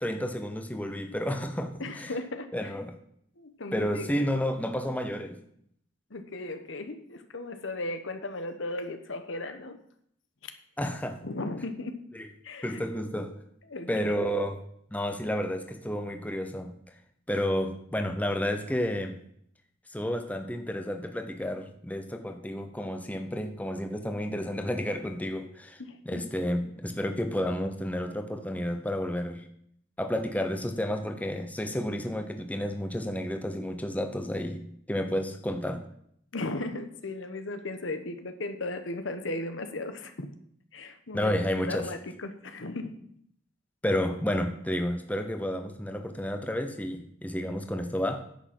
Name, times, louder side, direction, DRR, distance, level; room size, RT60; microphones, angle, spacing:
voice 1, 0.0-2.1 2.5-2.9 3.7-5.4 10.8-11.2 12.1-12.3 12.6-13.3 13.9-14.6 14.9-16.8 17.3-19.2 19.9-29.5 30.0-35.9 41.1-41.9 43.8-48.3, equal, 10° left, 5 dB, 0.9 m, -31 dB
voice 2, 1.8-2.7 3.4-4.2 6.1-9.8 10.4-10.5 11.2-12.0 12.4-12.8 13.7-14.3 25.8-26.3 36.3-40.3 40.7-41.3 41.6-43.0, left 2 dB, 70° left, 8 dB, 1.2 m, -36 dB
10.5 x 7.8 x 6.1 m, 0.68 s
head